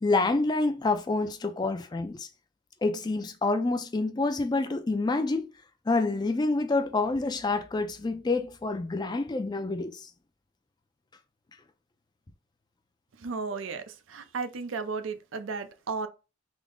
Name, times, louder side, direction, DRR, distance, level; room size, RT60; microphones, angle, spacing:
voice 1, 0.0-2.3 2.8-5.5 5.9-10.1, left 3 dB, 20° left, 0.4 m, -27 dB
voice 2, 13.2-16.1, right 4 dB, 80° right, 0.5 m, -34 dB
3.6 x 2.0 x 3.6 m
head